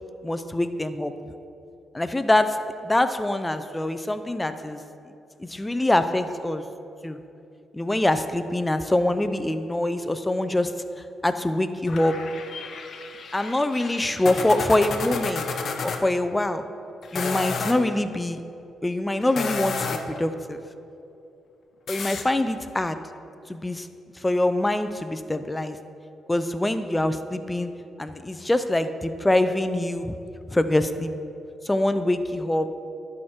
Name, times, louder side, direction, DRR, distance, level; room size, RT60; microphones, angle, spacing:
voice 1, 0.2-1.1 1.9-2.6 2.8-4.8 5.4-6.6 7.0-7.2 7.7-10.7 11.2-12.2 13.3-15.4 15.8-16.6 17.1-18.4 18.8-20.6 21.9-23.0 23.5-23.9 24.2-25.8 26.3-27.7 28.0-30.1 30.5-31.1 31.6-32.7, left 1 dB, 15° left, 10 dB, 0.5 m, -24 dB
sound 1, 11.9-16.0 17.0-17.8 19.2-20.2 21.9-22.2, left 5 dB, 60° left, 0.7 m, -31 dB
11.5 x 5.0 x 4.3 m, 2.6 s
cardioid pair, 80°, 0 cm